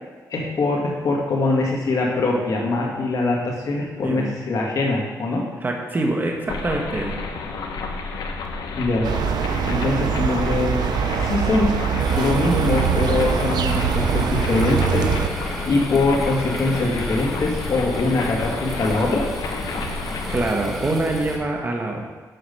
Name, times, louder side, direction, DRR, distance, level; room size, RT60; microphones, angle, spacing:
voice 1, 0.3-5.4 8.8-9.1 9.7-10.8 11.2-11.7 12.2-15.1 15.7-19.2, left 2 dB, 60° left, -1 dB, 2.0 m, -22 dB
voice 2, 4.0-4.3 5.6-7.2 20.3-22.1, right 2 dB, 30° right, 1 dB, 1.1 m, -25 dB
sound 1, 6.5-20.4, left 3 dB, 80° left, 0.9 m, -31 dB
sound 2, 9.0-15.3, right 8 dB, 80° right, 0.5 m, -23 dB
sound 3, 12.0-21.4, equal, ahead, 1.8 m, -32 dB
7.8 x 6.0 x 5.4 m, 1.4 s
cardioid pair, 110°, 7 cm